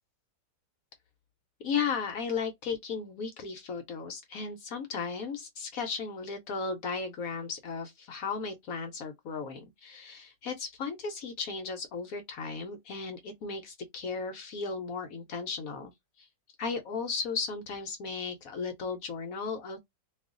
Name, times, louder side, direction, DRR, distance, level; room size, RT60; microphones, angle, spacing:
voice 1, 1.6-15.9 16.2-16.3 16.6-19.8, left 5 dB, 65° left, 1.0 m, -35 dB
2.6 x 2.4 x 3.6 m
omnidirectional pair, 1.8 m